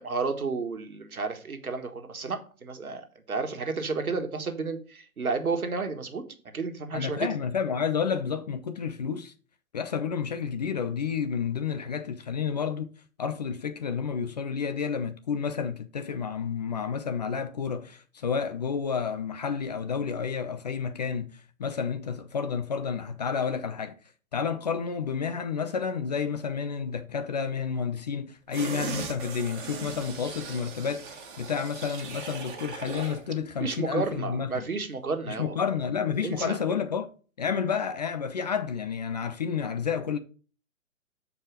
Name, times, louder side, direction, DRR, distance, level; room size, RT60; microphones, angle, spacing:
voice 1, 0.0-6.2 6.5-7.3 33.6-35.6 36.2-36.6, right 4 dB, 80° right, 1.5 m, -31 dB
voice 2, 6.9-9.3 9.7-12.9 13.2-23.9 24.3-34.7 35.3-37.1 37.4-40.2, left 6 dB, 30° left, 0.4 m, -30 dB
sound 1, 28.5-33.3 33.6-33.7, right 5 dB, 35° right, 1.7 m, -39 dB
7.3 x 4.7 x 4.8 m
figure-of-eight pair, 125°, 43 cm